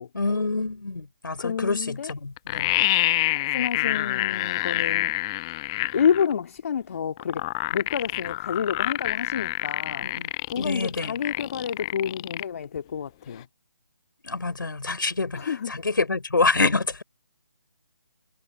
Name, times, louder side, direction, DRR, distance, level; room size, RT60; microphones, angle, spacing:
voice 1, 0.1-2.7 10.0-10.3 10.5-11.2 14.2-17.0, left 3 dB, 70° left, 4.0 m, -26 dB
voice 2, 1.4-2.1 3.5-5.2 5.9-7.4 7.7-13.5 15.3-15.7, left 7 dB, 45° left, 2.1 m, -29 dB
sound 1, 2.1-2.2 2.4-6.3 7.2-12.4 12.8-12.9, left 18 dB, 15° left, 0.3 m, -27 dB
figure-of-eight pair, 150°, 11 cm